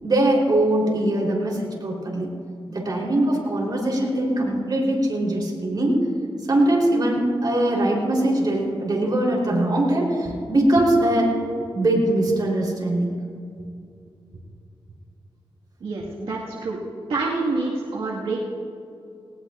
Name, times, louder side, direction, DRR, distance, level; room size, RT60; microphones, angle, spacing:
voice 1, 0.0-2.3 2.7-6.0 6.4-11.4 11.7-13.2, right 1 dB, 45° right, -2 dB, 3.8 m, -21 dB
voice 2, 15.8-16.8 17.1-18.4, right 3 dB, 85° right, -5 dB, 1.9 m, -27 dB
19.0 x 18.5 x 2.5 m, 2.5 s
wide cardioid pair, 90°, 9 cm